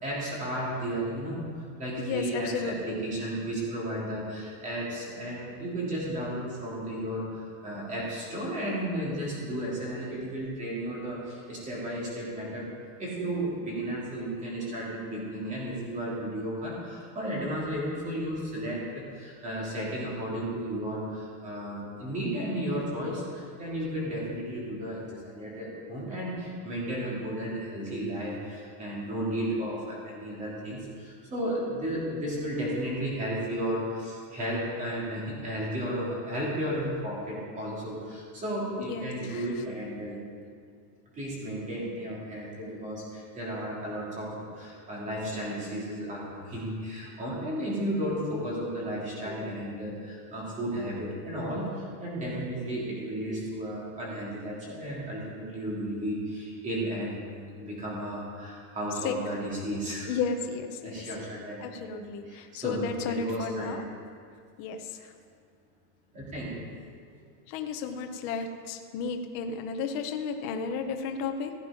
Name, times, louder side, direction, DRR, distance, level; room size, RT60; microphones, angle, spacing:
voice 1, 0.0-12.7 13.0-40.2 41.1-60.1 60.8-61.6 61.9-63.7 66.1-66.6 67.2-67.3, right 1 dB, 15° right, -5 dB, 2.9 m, -34 dB
voice 2, 2.0-3.1 38.8-39.6 59.0-59.2 60.1-61.1 61.6-63.8 64.6-65.1 67.5-71.5, left 5 dB, 25° left, 5 dB, 0.5 m, -33 dB
16.0 x 9.0 x 5.0 m, 2.2 s
supercardioid pair, 180°, 47 cm